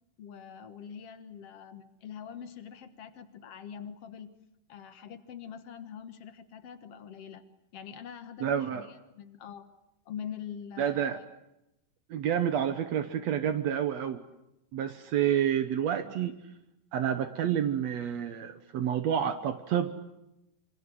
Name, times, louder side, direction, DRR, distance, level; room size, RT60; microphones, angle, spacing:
voice 1, 0.2-4.3 4.7-7.4 7.7-9.7 10.0-11.3, left 8 dB, 70° left, 10 dB, 1.4 m, -44 dB
voice 2, 8.4-8.9 10.8-11.2 12.1-14.2 14.7-16.4 16.9-19.9, right 9 dB, 85° right, 9 dB, 1.5 m, -29 dB
27.5 x 26.0 x 7.9 m, 0.87 s
omnidirectional pair, 4.8 m